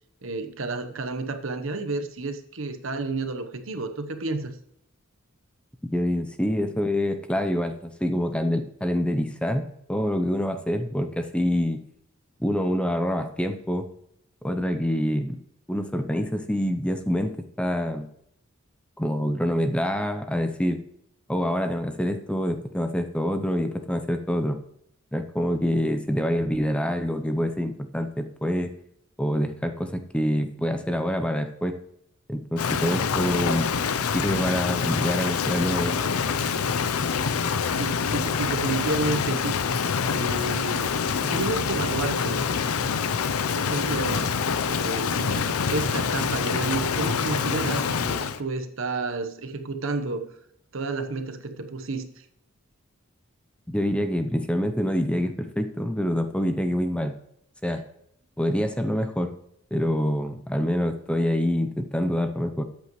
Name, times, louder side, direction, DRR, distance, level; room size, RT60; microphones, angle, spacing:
voice 1, 0.2-4.6 37.8-39.6 40.1-42.5 43.5-44.3 44.7-50.3 50.7-52.2, right 3 dB, 65° right, 7 dB, 1.0 m, -31 dB
voice 2, 5.9-11.8 12.4-13.9 14.4-15.4 15.7-17.3 17.6-18.1 19.0-20.8 21.3-24.6 25.1-28.7 29.2-31.8 32.3-33.7 34.1-36.0 53.7-57.1 57.6-57.8 58.4-59.3 59.7-62.6, equal, 5° left, 7 dB, 0.6 m, -26 dB
Rain, 32.6-48.4, left 6 dB, 90° left, 0.6 m, -26 dB
13.5 x 8.4 x 3.1 m, 0.73 s
head